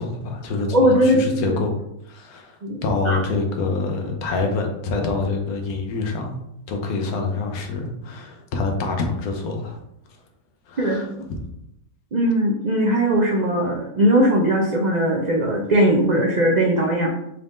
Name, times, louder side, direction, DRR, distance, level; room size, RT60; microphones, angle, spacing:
voice 1, 0.0-1.8 2.1-6.4 6.7-9.8 10.7-11.4, left 3 dB, 80° left, 3 dB, 1.2 m, -26 dB
voice 2, 0.7-1.6 2.6-3.2 10.8-11.3 12.1-17.1, right 1 dB, 85° right, -2 dB, 0.3 m, -19 dB
4.2 x 3.5 x 2.5 m, 0.80 s
omnidirectional pair, 1.5 m